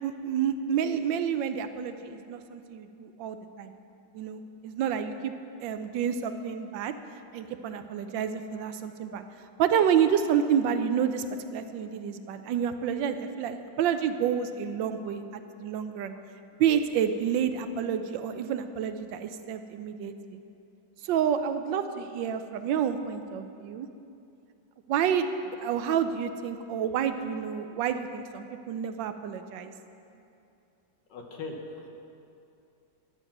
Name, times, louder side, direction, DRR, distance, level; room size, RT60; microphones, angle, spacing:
voice 1, 0.0-3.7 4.1-5.3 5.6-6.9 7.3-9.2 9.6-11.2 11.5-16.1 16.6-20.4 21.0-23.9 24.9-25.3 25.6-29.7, right 8 dB, 85° right, 9 dB, 1.4 m, -29 dB
voice 2, 31.1-31.9, left 3 dB, 75° left, 2 dB, 1.8 m, -39 dB
12.0 x 8.0 x 6.0 m, 2.7 s
omnidirectional pair, 2.0 m